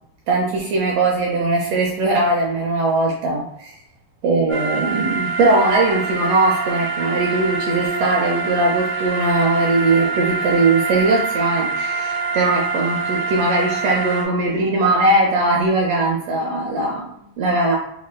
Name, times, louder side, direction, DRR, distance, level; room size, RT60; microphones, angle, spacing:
voice 1, 0.3-3.7 4.2-17.8, right 2 dB, 75° right, -1 dB, 1.5 m, -20 dB
sound 1, 4.5-14.2, right 4 dB, 20° right, 0.3 m, -25 dB
5.9 x 3.1 x 2.2 m, 0.73 s
omnidirectional pair, 3.5 m